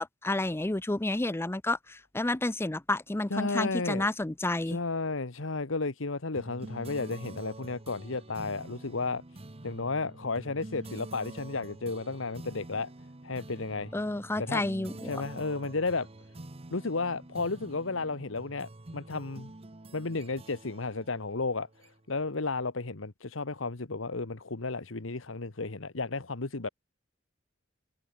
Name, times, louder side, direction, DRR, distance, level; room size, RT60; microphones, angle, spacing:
voice 1, 0.0-4.8 13.9-15.1, left 2 dB, 10° left, 0.6 m, -30 dB
voice 2, 3.3-4.1 4.7-9.2 9.6-12.9 13.2-13.9 14.4-14.7 15.0-16.1 16.7-19.5 19.9-21.7 22.1-26.7, left 3 dB, 85° left, 1.4 m, -33 dB
sound 1, 6.3-22.2, right 2 dB, 30° right, 1.0 m, -47 dB
head